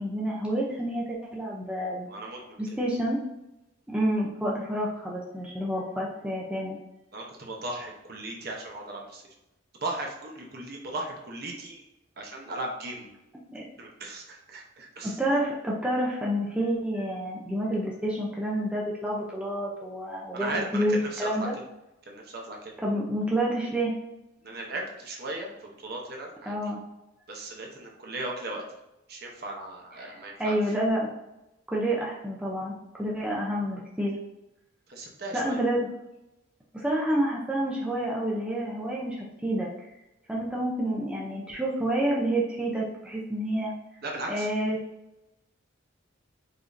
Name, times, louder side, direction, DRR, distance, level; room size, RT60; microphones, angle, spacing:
voice 1, 0.0-2.1 2.6-3.2 3.9-6.8 13.5-13.6 15.0-21.5 22.8-23.9 26.5-26.8 30.0-31.1 31.7-34.2 35.3-35.9 36.7-39.7 40.3-43.7 44.3-44.8, right 1 dB, 5° right, -4 dB, 0.4 m, -29 dB
voice 2, 2.1-2.6 7.1-9.2 9.8-11.8 12.2-13.1 13.8-15.2 20.3-21.5 22.1-22.7 24.4-26.6 27.3-28.6 29.1-30.6 34.9-35.6 44.0-44.5, right 2 dB, 50° right, 0 dB, 0.8 m, -37 dB
5.0 x 2.6 x 2.5 m, 0.92 s
head